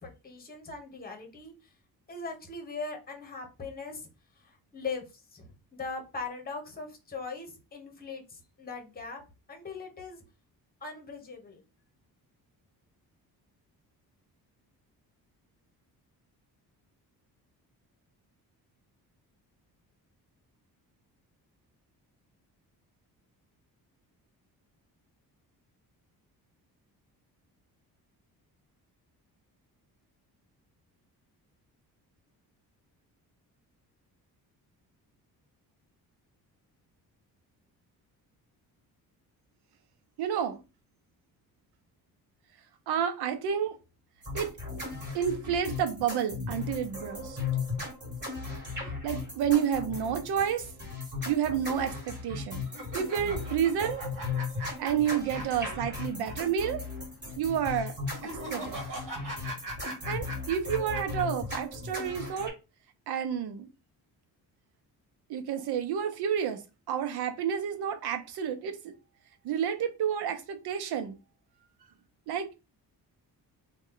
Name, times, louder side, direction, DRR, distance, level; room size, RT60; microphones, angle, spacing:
voice 1, 0.0-1.5 2.1-4.1 4.4-9.2 9.5-10.2 10.8-11.6, left 4 dB, 25° left, 1.1 m, -40 dB
voice 2, 40.2-40.6 42.9-43.7 44.3-44.5 45.1-47.4 49.0-50.6 51.3-52.6 52.9-54.0 54.6-56.8 57.4-58.0 58.5-58.8 60.1-62.5 63.1-63.7 65.3-68.9 69.4-71.2 72.3-72.6, right 8 dB, 85° right, 0.7 m, -30 dB
sound 1, 44.2-62.5, left 4 dB, 30° right, 2.0 m, -37 dB
sound 2, 52.7-56.3 56.6-56.7 58.1-61.2, right 1 dB, 55° right, 1.3 m, -40 dB
3.1 x 2.4 x 3.7 m
cardioid pair, 115°, 37 cm